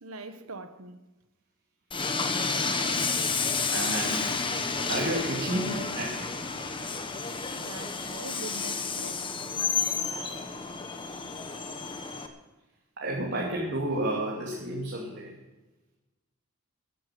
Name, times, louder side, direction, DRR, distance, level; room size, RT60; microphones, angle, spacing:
voice 1, 0.0-1.0 7.5-9.4, right 3 dB, 85° right, 1.3 m, -42 dB
Train, 1.9-12.3, left 4 dB, 25° left, 1.3 m, -31 dB
voice 2, 3.7-6.3 13.0-15.3, right 1 dB, 55° right, 3.0 m, -31 dB
14.5 x 10.5 x 7.7 m
head